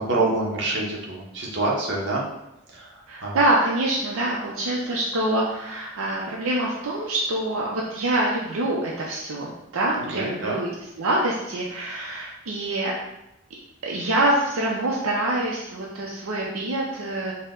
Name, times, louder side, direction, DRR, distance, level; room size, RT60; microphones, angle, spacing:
voice 1, 0.0-2.2 2.7-3.4 10.0-10.6, right 2 dB, 55° right, -3 dB, 0.8 m, -26 dB
voice 2, 3.1-10.7 11.0-12.9 13.8-17.3, right 1 dB, 75° right, -3 dB, 0.5 m, -25 dB
4.3 x 2.1 x 3.6 m, 0.88 s
head